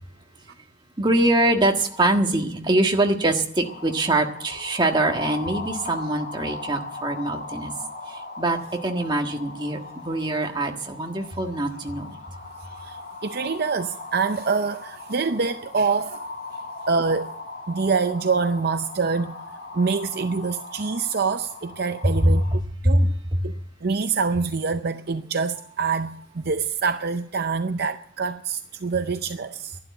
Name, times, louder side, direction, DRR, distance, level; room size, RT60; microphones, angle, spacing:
voice 1, 1.0-7.7 8.1-12.1 22.2-23.4, right 1 dB, 20° right, 1.5 m, -23 dB
sound 1, 3.6-22.6, left 3 dB, 50° left, 2.2 m, -39 dB
voice 2, 13.2-16.3 16.9-17.3 17.7-19.3 19.7-23.1 23.4-23.5 23.8-29.8, right 4 dB, 50° right, 0.6 m, -25 dB
12.0 x 11.5 x 9.3 m
head